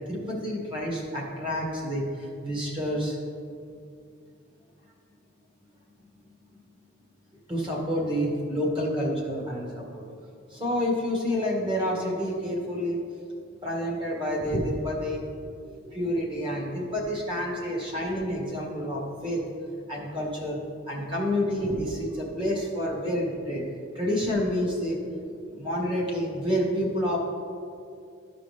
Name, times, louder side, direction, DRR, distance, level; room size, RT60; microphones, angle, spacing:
voice 1, 0.1-3.2 7.5-10.1 10.5-13.0 13.6-15.3 15.8-19.4 19.9-23.6 23.9-25.0 25.5-27.2, equal, 25° right, -3 dB, 1.7 m, -29 dB
13.5 x 5.1 x 3.4 m, 2.4 s
head